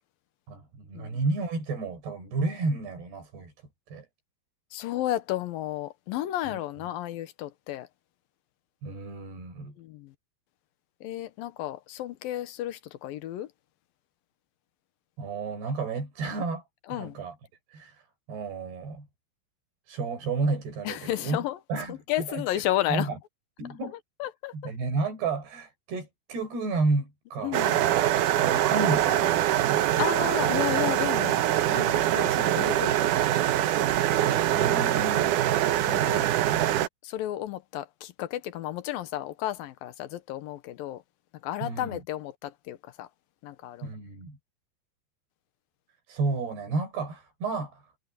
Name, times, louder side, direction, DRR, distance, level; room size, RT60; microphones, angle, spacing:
voice 1, 0.5-3.5 3.9-4.1 6.4-6.6 8.8-9.7 15.2-16.6 16.9-17.3 17.7-19.1 19.9-21.4 21.7-22.6 22.9-23.2 23.6-24.0 24.5-27.9 28.4-29.4 29.7-29.9 34.5-35.4 36.0-36.6 41.6-42.0 43.8-44.4 46.1-47.8, right 3 dB, 85° right, 8.1 m, -32 dB
voice 2, 4.7-7.9 9.8-10.1 11.0-13.5 16.9-17.2 20.9-21.6 21.9-23.1 24.2-24.5 27.4-27.8 30.0-33.4 35.9-36.2 37.0-41.0 41.4-43.1 43.4-43.9, left 14 dB, 75° left, 2.6 m, -33 dB
sound 1, 27.5-36.9, right 12 dB, 70° right, 2.1 m, -24 dB
omnidirectional pair, 4.5 m